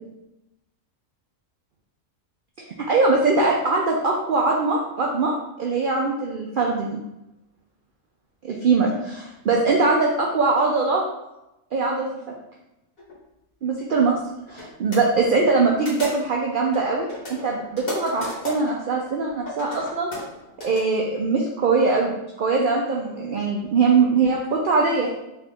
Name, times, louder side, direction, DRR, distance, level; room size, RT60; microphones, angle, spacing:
voice 1, 2.8-5.3 5.6-7.0 8.4-11.0 11.7-12.1 13.6-14.2 14.5-20.1 20.6-25.1, right 4 dB, 60° right, -1 dB, 0.5 m, -22 dB
sound 1, 13.0-13.2 13.9-14.0 14.5-14.7 14.9-15.0 15.8-16.4 16.7-18.7 19.4-20.8, left 1 dB, 45° left, 1.5 m, -34 dB
3.7 x 2.3 x 4.1 m, 0.90 s
omnidirectional pair, 1.4 m